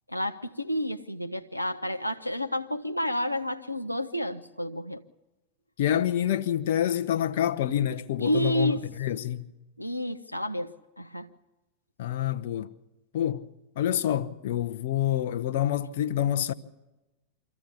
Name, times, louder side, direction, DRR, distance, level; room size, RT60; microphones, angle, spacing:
voice 1, 0.1-5.0 8.2-8.8 9.8-11.3, equal, 90° left, 0.7 m, -30 dB
voice 2, 5.8-9.5 12.0-12.7 13.1-13.5 13.8-16.5, left 11 dB, 55° left, 0.8 m, -27 dB
24.5 x 14.5 x 8.3 m
figure-of-eight pair, 90°, 0 cm